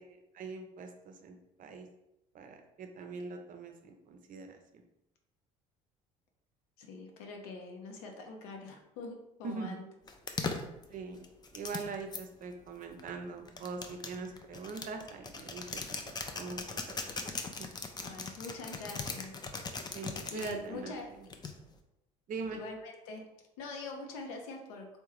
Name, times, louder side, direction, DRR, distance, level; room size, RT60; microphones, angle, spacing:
voice 1, 0.0-1.9 2.3-4.6 9.4-9.8 10.9-11.3 11.5-16.6 16.9-17.1 17.6-17.7 19.9-20.9 22.3-22.6, right 4 dB, 45° right, 5 dB, 0.5 m, -42 dB
voice 2, 6.8-9.9 18.0-19.3 20.3-21.1 22.5-23.2 23.6-24.9, left 3 dB, 75° left, 3 dB, 0.6 m, -44 dB
sound 1, 10.1-12.2 13.0-20.6 21.3-21.8, left 4 dB, 20° left, 0.4 m, -39 dB
3.5 x 2.2 x 3.0 m, 0.87 s
hypercardioid pair, 60°, 19 cm